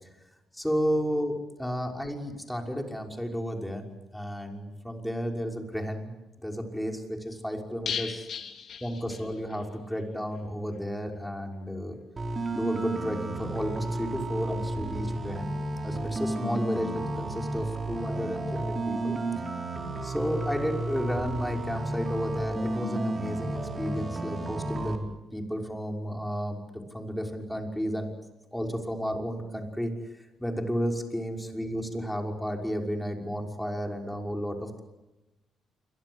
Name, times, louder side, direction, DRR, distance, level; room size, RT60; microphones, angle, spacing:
voice 1, 0.5-3.9 4.1-6.1 6.4-8.3 8.8-12.0 12.5-15.5 15.8-19.2 20.0-28.1 28.5-30.0 30.4-34.8, equal, 5° left, 2 dB, 5.9 m, -32 dB
sound 1, 7.9-9.6 9.9-10.0 10.3-10.4, left 7 dB, 60° left, 3.4 m, -36 dB
sound 2, 12.2-25.0, right 2 dB, 30° right, 5.0 m, -32 dB
28.5 x 24.0 x 8.2 m, 1.0 s
cardioid pair, 90°, 0 cm